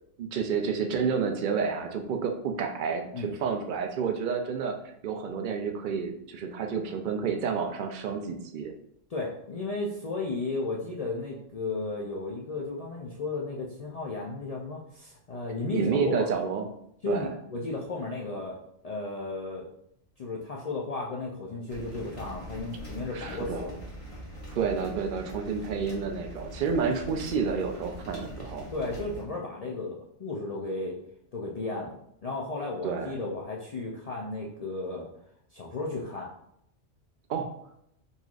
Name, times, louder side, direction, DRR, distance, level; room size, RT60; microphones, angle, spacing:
voice 1, 0.2-4.8 5.0-8.7 15.7-16.7 17.1-17.3 23.1-23.7 24.6-28.6 32.8-33.1 37.3-37.5, right 6 dB, 60° right, 5 dB, 0.5 m, -30 dB
voice 2, 9.1-16.3 17.0-18.6 18.8-19.7 20.2-23.8 28.7-31.0 31.3-35.1 35.5-36.3, left 3 dB, 60° left, -3 dB, 0.4 m, -34 dB
sound 1, 21.7-29.2, equal, 30° left, 1.0 m, -42 dB
4.0 x 3.0 x 2.4 m, 0.74 s
omnidirectional pair, 1.2 m